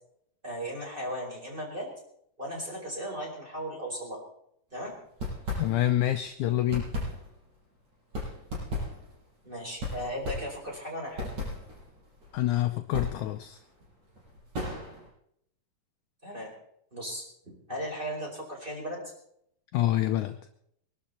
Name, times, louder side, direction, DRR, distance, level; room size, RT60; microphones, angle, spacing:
voice 1, 0.4-1.9 2.4-4.2 4.7-4.9 9.4-11.3 16.2-16.5 16.9-19.1, equal, 15° right, -2 dB, 4.8 m, -36 dB
sound 1, 5.0-6.1 6.4-15.1, left 2 dB, 55° right, 7.5 m, -36 dB
voice 2, 5.6-6.9 12.3-13.6 19.7-20.4, left 13 dB, 75° left, 8 dB, 1.9 m, -27 dB
23.0 x 12.0 x 4.2 m, 0.72 s
omnidirectional pair, 4.0 m